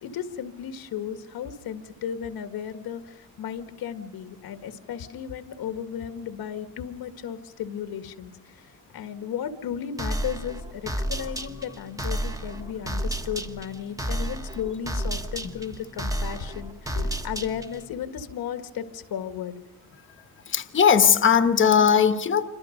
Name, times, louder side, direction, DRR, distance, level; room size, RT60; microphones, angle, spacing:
voice 1, 0.0-19.6, left 8 dB, 90° left, 8 dB, 2.0 m, -35 dB
sound 1, 10.0-17.9, right 1 dB, 10° right, 1.3 m, -31 dB
voice 2, 20.5-22.4, left 7 dB, 35° left, 9 dB, 1.2 m, -19 dB
28.0 x 25.5 x 5.3 m, 0.88 s
cardioid pair, 165°, 36 cm